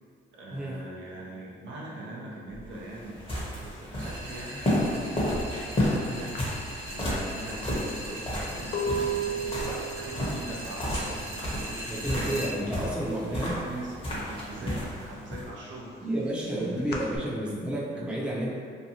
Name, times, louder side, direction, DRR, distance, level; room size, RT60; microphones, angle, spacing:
voice 1, 0.3-3.2 3.6-6.5 6.8-12.9 13.3-16.0 16.4-17.3 17.9-18.2, right 2 dB, 70° right, -4 dB, 0.6 m, -42 dB
sound 1, 2.5-15.5, left 1 dB, 30° left, 0.8 m, -32 dB
sound 2, 4.0-12.5, equal, 55° right, 1.0 m, -41 dB
sound 3, 6.3-12.0 12.3-12.8 13.1-14.2 14.6-17.2, right 3 dB, 55° left, 0.4 m, -35 dB
voice 2, 11.9-13.6 14.6-14.7 16.0-18.5, right 1 dB, 5° right, -6 dB, 0.6 m, -31 dB
2.7 x 2.2 x 2.8 m, 2.1 s
cardioid pair, 90°, 20 cm